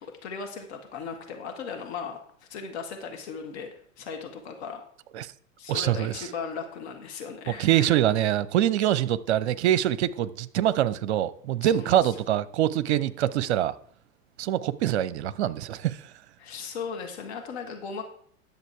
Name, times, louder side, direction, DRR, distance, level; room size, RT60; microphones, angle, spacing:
voice 1, 0.0-2.2 2.5-3.7 4.0-4.8 5.6-8.0 11.6-12.1 12.9-13.0 16.4-18.0, left 5 dB, 55° left, 1.6 m, -37 dB
voice 2, 5.7-6.3 7.5-13.7 14.4-16.0, right 12 dB, 55° right, 0.7 m, -24 dB
10.5 x 6.8 x 4.6 m
figure-of-eight pair, 90°, 40 cm